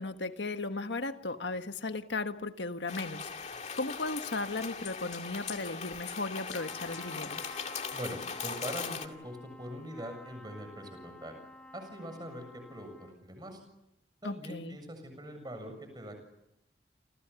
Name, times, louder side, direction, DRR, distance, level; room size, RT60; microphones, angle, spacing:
voice 1, 0.0-7.4 14.2-14.8, left 3 dB, 80° left, 8 dB, 1.6 m, -36 dB
sound 1, 2.9-9.1, left 5 dB, 40° left, 2.3 m, -39 dB
Trumpet, 6.5-13.2, left 1 dB, 5° left, 3.0 m, -52 dB
voice 2, 7.9-11.3 11.7-13.6 14.2-16.2, equal, 25° right, 6 dB, 7.3 m, -42 dB
29.0 x 28.5 x 7.1 m, 0.84 s
head